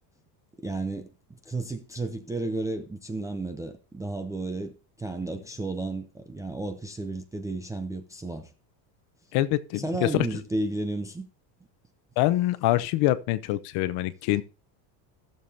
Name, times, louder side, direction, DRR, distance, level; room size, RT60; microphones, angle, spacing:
voice 1, 0.6-1.1 1.5-8.5 9.7-11.3, right 2 dB, 5° right, 0.4 m, -33 dB
voice 2, 9.3-10.3 12.2-14.4, left 15 dB, 55° left, 0.8 m, -25 dB
16.5 x 7.0 x 2.7 m
cardioid pair, 155°, 47 cm